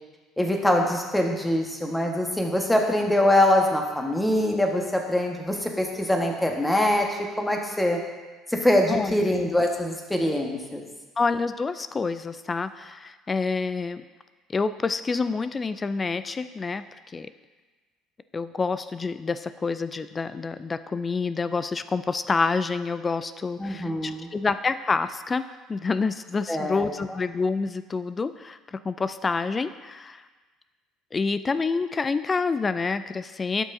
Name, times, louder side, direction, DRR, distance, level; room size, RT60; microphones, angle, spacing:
voice 1, 0.4-8.0 8.5-10.8 23.6-24.3 26.5-26.9, left 1 dB, 10° left, 1 dB, 1.4 m, -23 dB
voice 2, 11.2-14.0 14.5-16.8 17.1-17.3 18.3-30.2 31.1-33.6, left 4 dB, 30° left, 13 dB, 0.3 m, -27 dB
12.0 x 5.5 x 2.7 m, 1.3 s
hypercardioid pair, 60°, 0 cm